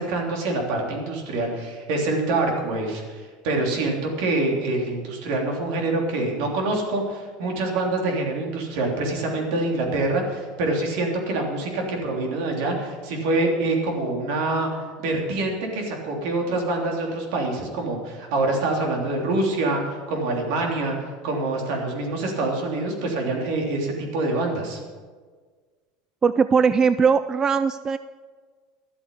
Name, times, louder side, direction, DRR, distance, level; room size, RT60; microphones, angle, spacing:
voice 1, 0.0-14.7 15.0-21.0 21.2-24.8, right 2 dB, 70° right, 1 dB, 3.3 m, -25 dB
voice 2, 26.2-28.0, right 6 dB, 20° right, 13 dB, 0.3 m, -19 dB
12.5 x 8.2 x 8.4 m, 1.5 s
supercardioid pair, 140°, 3 cm